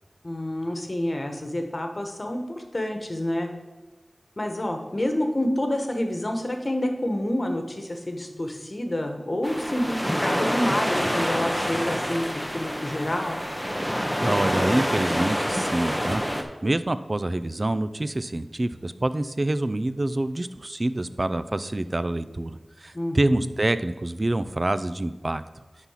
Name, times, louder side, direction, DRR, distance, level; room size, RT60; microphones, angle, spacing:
voice 1, 0.2-3.5 4.4-13.4 22.9-23.5, left 1 dB, 40° left, 4 dB, 1.2 m, -28 dB
sound 1, 9.4-16.4, equal, ahead, 0.8 m, -27 dB
voice 2, 14.2-25.4, right 1 dB, 40° right, 13 dB, 0.4 m, -26 dB
10.5 x 4.1 x 5.7 m, 1.2 s
wide cardioid pair, 55°, 0 cm